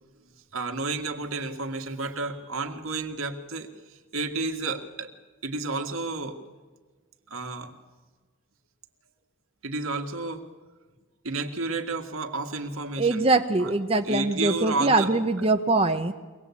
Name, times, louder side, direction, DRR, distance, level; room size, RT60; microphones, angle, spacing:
voice 1, 0.5-5.1 5.4-6.4 7.3-7.7 9.6-10.4 11.2-13.2 13.6-13.7 14.1-15.1, right 3 dB, 75° right, 5 dB, 2.0 m, -31 dB
voice 2, 13.0-16.1, right 2 dB, 25° right, 6 dB, 0.7 m, -23 dB
24.0 x 18.5 x 8.4 m, 1.3 s
head